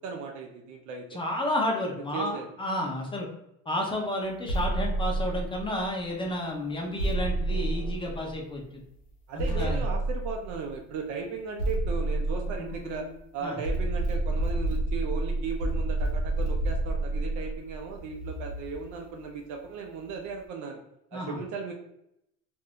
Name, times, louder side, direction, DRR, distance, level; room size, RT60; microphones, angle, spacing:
voice 1, 0.0-1.2 2.1-2.5 9.3-13.1 13.3-20.8 21.1-21.7, right 4 dB, 55° right, 2 dB, 0.5 m, -36 dB
voice 2, 1.1-3.3 3.7-8.6 9.3-9.8 13.4-13.6 21.1-21.4, left 1 dB, 15° left, 0 dB, 0.7 m, -31 dB
sound 1, 4.5-6.0 7.0-8.6 9.4-10.7 11.6-13.2 13.6-18.9, right 2 dB, 85° left, 0.9 m, -29 dB
sound 2, 7.5-8.0 9.5-10.0 12.5-13.2, left 6 dB, 60° left, 0.7 m, -42 dB
2.5 x 2.1 x 3.4 m, 0.80 s
supercardioid pair, 100°, 36 cm